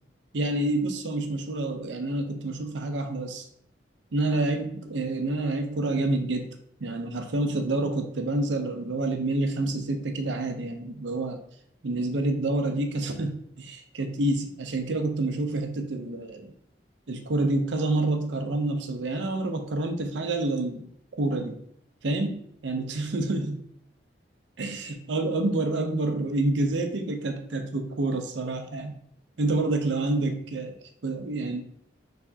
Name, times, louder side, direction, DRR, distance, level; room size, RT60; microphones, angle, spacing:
voice 1, 0.3-3.5 4.1-6.5 6.8-11.4 11.8-16.5 17.1-21.6 22.0-23.6 24.6-29.0 29.4-30.8 31.0-31.6, right 2 dB, 75° right, 6 dB, 0.6 m, -28 dB
4.5 x 3.3 x 2.7 m, 0.70 s
head